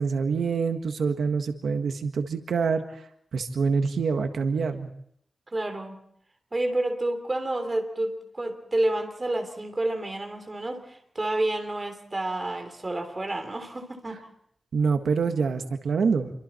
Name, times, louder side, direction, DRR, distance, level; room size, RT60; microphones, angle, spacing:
voice 1, 0.0-3.0 3.3-4.9 14.7-16.3, right 5 dB, 90° right, 6 dB, 1.6 m, -26 dB
voice 2, 5.5-6.0 6.5-14.2, right 1 dB, 25° right, 6 dB, 3.2 m, -29 dB
27.5 x 24.0 x 4.4 m, 0.69 s
wide cardioid pair, 155°, 0 cm